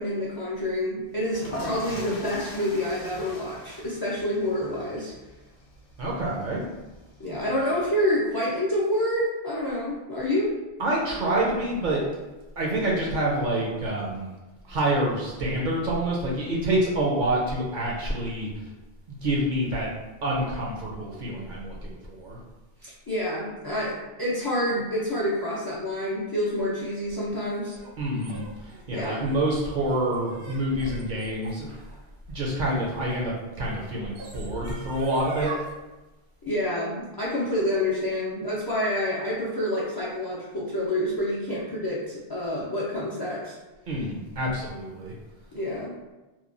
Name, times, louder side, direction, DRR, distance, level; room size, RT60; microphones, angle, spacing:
voice 1, 0.0-5.1 7.2-10.5 22.8-27.8 28.9-29.3 36.5-43.5 45.5-45.9, left 1 dB, 40° left, -6 dB, 0.3 m, -28 dB
sound 1, 1.1-8.0, left 1 dB, 55° left, 0.7 m, -41 dB
voice 2, 6.0-6.6 10.8-12.0 12.6-14.3 14.6-18.5 19.1-19.9 20.2-22.4 28.0-31.8 32.3-35.5 43.9-45.1, right 1 dB, 55° right, -3 dB, 0.6 m, -27 dB
sound 2, 27.0-33.1 33.9-35.7, right 2 dB, 80° right, 0.9 m, -40 dB
2.9 x 2.2 x 2.5 m, 1.1 s
omnidirectional pair, 1.1 m